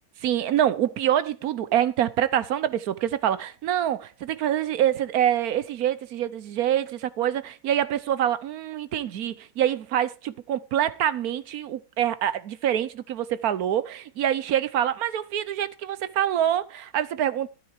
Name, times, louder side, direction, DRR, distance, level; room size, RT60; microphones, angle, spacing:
voice 1, 0.2-17.5, right 10 dB, 70° right, 1.2 m, -25 dB
12.5 x 9.6 x 4.7 m
omnidirectional pair, 1.7 m